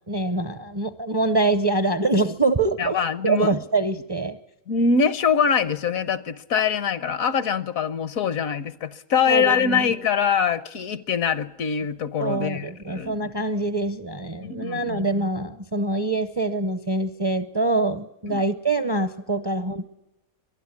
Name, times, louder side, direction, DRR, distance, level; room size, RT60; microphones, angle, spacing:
voice 1, 0.1-4.4 9.3-9.9 12.2-19.9, right 2 dB, 30° right, 12 dB, 0.5 m, -25 dB
voice 2, 2.8-3.6 4.7-13.2 14.4-15.0 18.3-18.4, left 6 dB, 75° left, 16 dB, 1.3 m, -23 dB
22.5 x 12.0 x 9.6 m, 0.91 s
omnidirectional pair, 1.5 m